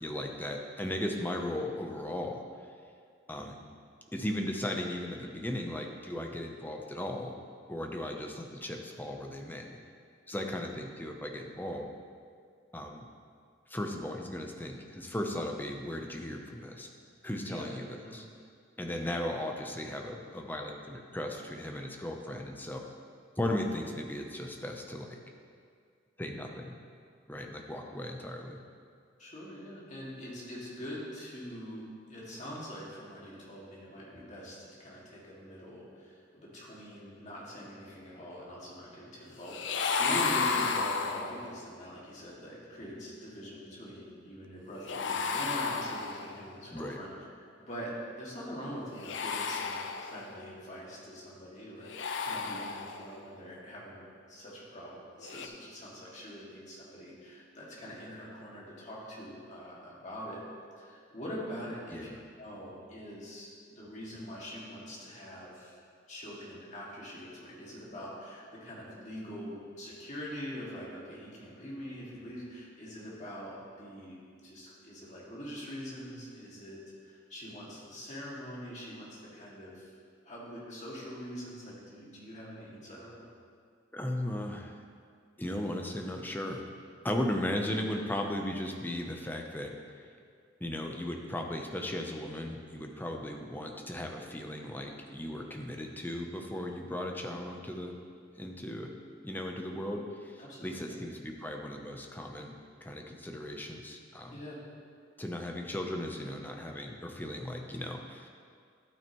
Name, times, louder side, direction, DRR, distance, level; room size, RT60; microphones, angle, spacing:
voice 1, 0.0-2.4 3.3-3.6 4.1-7.3 7.7-9.8 10.3-11.9 12.7-13.1 13.7-16.9 17.2-18.3 18.8-22.8 23.4-25.2 26.2-26.7 27.3-28.6 46.7-47.0 61.9-62.1 83.9-84.8 85.4-86.6 87.0-90.0 90.6-98.0 98.4-98.9 99.2-102.6 102.8-104.4 105.2-108.3, left 1 dB, 10° left, 3 dB, 0.7 m, -36 dB
voice 2, 29.2-47.1 47.7-60.4 60.8-65.8 66.1-74.2 74.4-79.9 80.3-83.2 100.4-101.0 104.3-104.6, equal, 40° left, -5 dB, 2.2 m, -43 dB
sound 1, 39.5-41.6 44.9-46.5 48.9-50.5 51.8-53.2 55.2-55.5, left 5 dB, 75° left, 0.6 m, -33 dB
12.0 x 8.8 x 3.1 m, 2.2 s
head